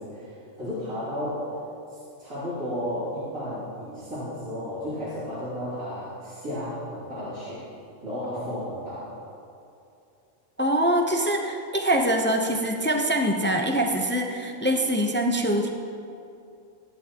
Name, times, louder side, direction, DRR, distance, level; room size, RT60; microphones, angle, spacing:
voice 1, 0.0-1.5 1.9-7.6 8.0-9.1, left 1 dB, 85° right, -12 dB, 3.2 m, -33 dB
voice 2, 10.6-15.7, right 1 dB, 20° left, 2 dB, 0.3 m, -24 dB
15.0 x 10.5 x 2.9 m, 2.6 s
omnidirectional pair, 1.4 m